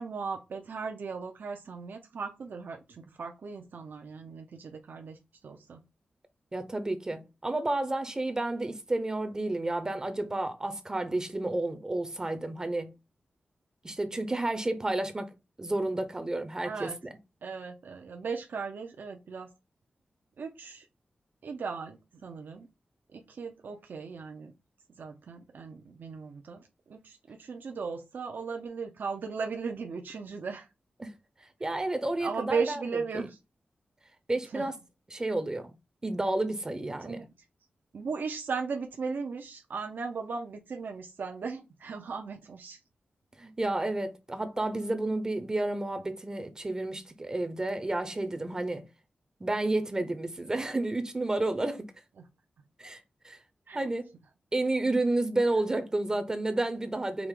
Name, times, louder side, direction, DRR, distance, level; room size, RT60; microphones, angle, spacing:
voice 1, 0.0-5.2 5.4-5.8 16.6-17.0 17.4-19.5 20.4-20.9 21.4-22.7 23.1-24.5 25.0-30.7 32.2-33.4 34.5-34.7 37.0-37.3 37.9-42.8 53.7-53.9, right 5 dB, 75° right, 0.7 m, -37 dB
voice 2, 6.5-12.9 13.8-17.1 31.0-31.2 31.6-33.3 34.3-34.8 35.1-35.7 36.0-37.3 43.4-48.9 49.4-51.9 52.8-53.4 53.7-54.1 54.5-57.3, right 2 dB, 20° right, 0.6 m, -31 dB
4.9 x 2.9 x 3.7 m
wide cardioid pair, 135°, 3 cm